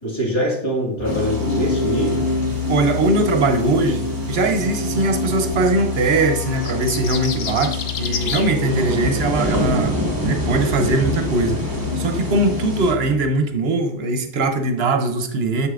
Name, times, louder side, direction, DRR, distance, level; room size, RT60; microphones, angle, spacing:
voice 1, 0.0-2.3, equal, 25° left, -3 dB, 1.9 m, -23 dB
sound 1, 1.0-13.2, left 10 dB, 5° left, 1.9 m, -30 dB
sound 2, 1.0-12.9, equal, 20° right, 0.9 m, -26 dB
voice 2, 2.7-4.0 4.3-9.9 10.2-11.6 12.0-15.7, right 2 dB, 70° right, 6 dB, 1.0 m, -20 dB
sound 3, 6.4-8.5, left 7 dB, 90° left, 1.1 m, -29 dB
7.5 x 6.5 x 2.4 m, 0.69 s
omnidirectional pair, 1.1 m